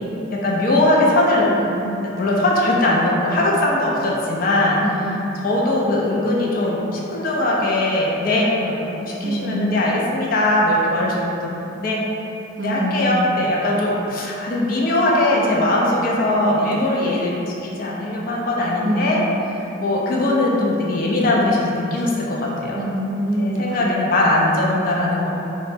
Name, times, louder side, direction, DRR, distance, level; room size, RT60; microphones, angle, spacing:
voice 1, 0.3-1.5 2.0-4.8 5.4-11.5 11.8-12.0 12.6-17.4 17.8-19.2 19.8-22.8 23.4-25.3, left 1 dB, 45° left, -3 dB, 0.4 m, -20 dB
voice 2, 1.6-1.9 4.8-5.2 9.2-9.8 12.6-13.3 18.8-19.4 22.7-23.9, right 1 dB, 40° right, -2 dB, 0.3 m, -25 dB
2.8 x 2.1 x 3.3 m, 3.0 s
head